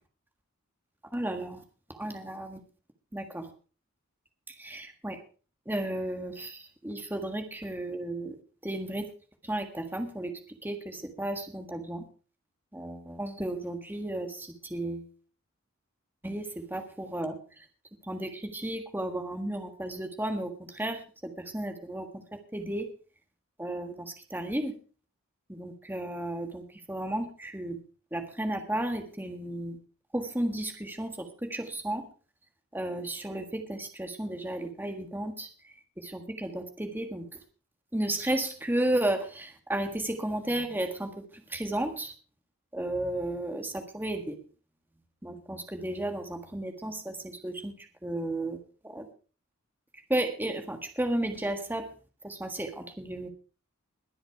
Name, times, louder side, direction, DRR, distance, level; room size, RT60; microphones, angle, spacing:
voice 1, 1.1-1.6 1.9-2.6 3.1-3.5 4.5-5.2 5.7-9.1 9.4-12.0 12.7-15.1 16.2-17.7 18.0-22.9 23.6-24.7 25.5-27.8 28.1-29.8 30.1-32.0 32.7-37.3 37.9-42.1 42.7-44.4 45.2-49.1 50.1-51.9 52.2-53.3, right 1 dB, 10° right, 6 dB, 1.6 m, -33 dB
21.0 x 7.9 x 4.6 m, 0.36 s
head